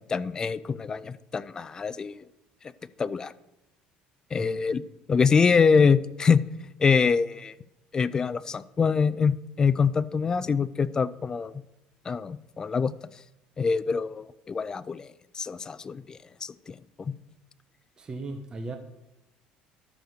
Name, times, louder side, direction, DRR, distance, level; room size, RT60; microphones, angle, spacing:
voice 1, 0.1-2.2 3.0-3.3 4.3-4.8 5.1-6.4 6.8-7.5 7.9-11.5 12.1-12.9 13.6-15.1 15.3-17.1, left 5 dB, 25° left, 17 dB, 0.4 m, -25 dB
voice 2, 18.0-18.8, right 2 dB, 25° right, 5 dB, 1.0 m, -36 dB
12.5 x 6.6 x 6.4 m, 0.90 s
cardioid pair, 125°, 3 cm